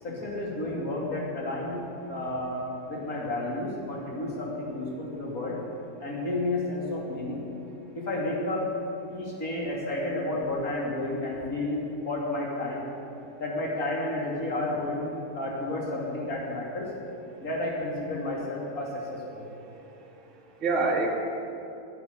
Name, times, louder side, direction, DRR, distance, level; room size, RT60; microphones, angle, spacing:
voice 1, 0.0-5.6 6.0-7.4 7.9-8.7 9.1-12.8 13.4-16.9 17.4-19.5, left 2 dB, 25° left, -4 dB, 2.9 m, -31 dB
voice 2, 19.4-21.1, right 3 dB, 25° right, -5 dB, 2.3 m, -31 dB
11.5 x 9.6 x 9.5 m, 2.7 s
omnidirectional pair, 4.0 m